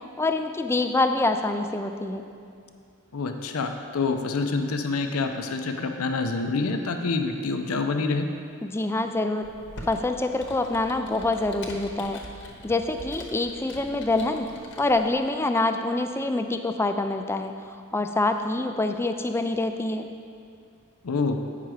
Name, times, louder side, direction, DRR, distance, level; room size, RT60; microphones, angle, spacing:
voice 1, 0.2-2.2 8.6-9.5 9.9-12.2 12.6-14.5 14.8-20.1, left 2 dB, 10° left, 7 dB, 0.3 m, -26 dB
voice 2, 3.1-8.3 21.0-21.4, left 3 dB, 85° left, 5 dB, 0.6 m, -27 dB
Computer keyboard, 9.4-15.2, left 1 dB, 55° left, 1.1 m, -43 dB
8.9 x 5.8 x 4.8 m, 2.3 s
head